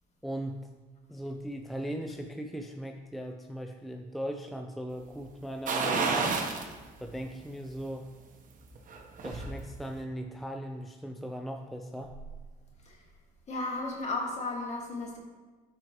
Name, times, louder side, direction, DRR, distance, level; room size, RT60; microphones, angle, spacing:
voice 1, 0.2-0.7 1.1-6.4 7.0-8.1 9.2-12.1, right 1 dB, ahead, 3 dB, 0.4 m, -38 dB
sound 1, 5.7-6.7 7.1-7.2 8.7-9.5 9.9-10.0, right 4 dB, 50° right, 1.2 m, -29 dB
voice 2, 12.8-13.1 13.5-15.2, left 2 dB, 40° left, -1 dB, 2.1 m, -34 dB
13.0 x 4.9 x 3.1 m, 1.3 s
cardioid pair, 110°, 17 cm